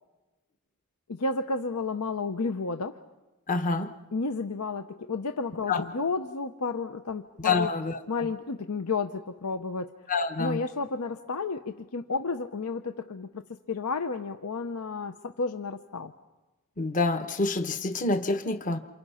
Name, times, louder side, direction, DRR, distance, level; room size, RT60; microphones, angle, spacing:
voice 1, 1.1-3.0 4.1-7.7 8.1-9.9 10.4-16.1, left 4 dB, 80° left, 8 dB, 0.8 m, -32 dB
voice 2, 3.5-3.9 5.7-5.8 7.4-8.0 10.1-10.6 16.8-18.8, left 3 dB, 35° left, 9 dB, 1.0 m, -27 dB
28.5 x 28.5 x 5.7 m, 1.1 s
head